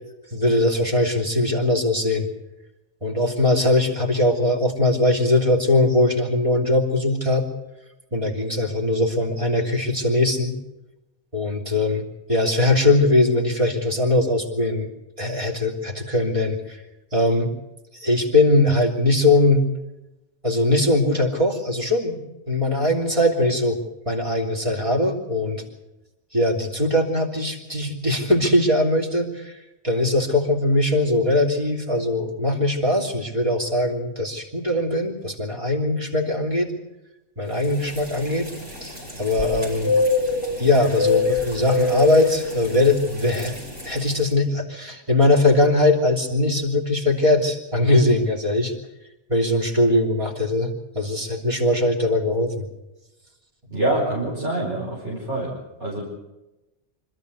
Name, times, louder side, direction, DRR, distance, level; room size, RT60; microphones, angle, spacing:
voice 1, 0.3-2.3 3.0-7.5 8.1-10.6 11.3-12.0 12.3-14.9 15.2-16.8 17.1-17.5 17.9-19.6 20.4-22.2 22.5-23.8 24.1-25.6 26.3-29.5 29.8-36.7 37.4-38.5 38.8-39.9 40.6-43.6 43.8-48.7 49.3-52.6, left 2 dB, 30° right, 0 dB, 3.3 m, -21 dB
sound 1, 37.6-44.2, left 3 dB, 60° right, 6.3 m, -26 dB
voice 2, 53.7-55.5 55.8-56.0, right 1 dB, 80° right, -5 dB, 5.5 m, -25 dB
26.0 x 13.5 x 8.3 m, 1.0 s
omnidirectional pair, 1.2 m